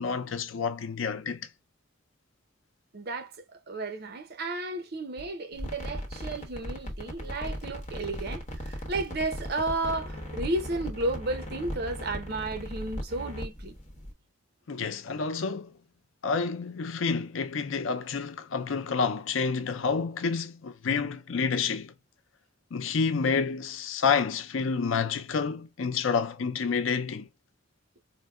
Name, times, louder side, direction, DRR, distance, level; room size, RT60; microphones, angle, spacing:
voice 1, 0.0-1.5 14.7-15.7 16.2-21.9 22.7-27.3, left 5 dB, 90° left, 0.5 m, -29 dB
voice 2, 2.9-3.3 3.7-13.8, right 2 dB, 55° right, 0.7 m, -33 dB
sound 1, 5.5-14.1, equal, 35° left, 1.0 m, -37 dB
4.5 x 2.1 x 2.3 m
head